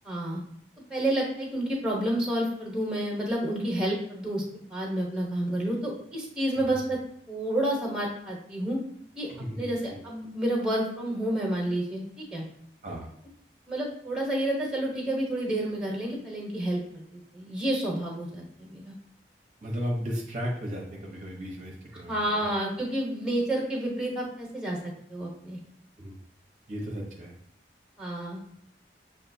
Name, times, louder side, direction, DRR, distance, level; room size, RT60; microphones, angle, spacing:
voice 1, 0.0-0.4 0.9-4.4 4.7-7.0 7.3-8.8 9.2-9.3 9.6-12.4 13.7-18.9 22.1-24.8 25.1-25.6 28.0-28.4, right 1 dB, 5° right, -2 dB, 0.9 m, -29 dB
voice 2, 9.3-9.7 12.8-13.1 19.6-22.5 26.0-26.2 26.7-27.3, equal, 40° right, -1 dB, 0.7 m, -35 dB
6.5 x 2.4 x 2.6 m, 0.71 s
head